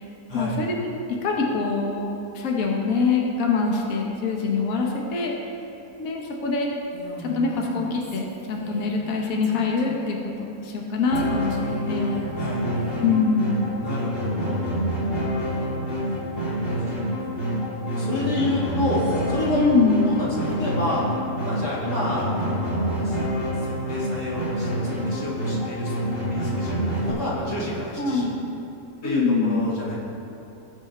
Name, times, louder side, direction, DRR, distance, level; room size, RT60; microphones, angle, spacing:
voice 1, 0.3-0.9 1.2-5.3 6.0-6.7 7.2-12.2 13.0-13.6 19.5-20.1 28.0-28.4 29.0-29.7, left 4 dB, 60° left, -1 dB, 1.5 m, -24 dB
Female speech woman speaking, 6.9-9.2 9.4-10.2 11.1-13.3, right 1 dB, 15° right, 1.7 m, -41 dB
sound 1, 11.1-27.1, equal, 35° left, 2.2 m, -27 dB
voice 2, 13.8-14.7 15.5-15.7 16.4-16.8 17.2-17.4 17.8-19.6 20.1-21.0 21.4-23.2 23.6-28.3 29.0-30.0, left 2 dB, 90° left, -7 dB, 2.6 m, -30 dB
18.0 x 6.2 x 3.2 m, 3.0 s
omnidirectional pair, 1.7 m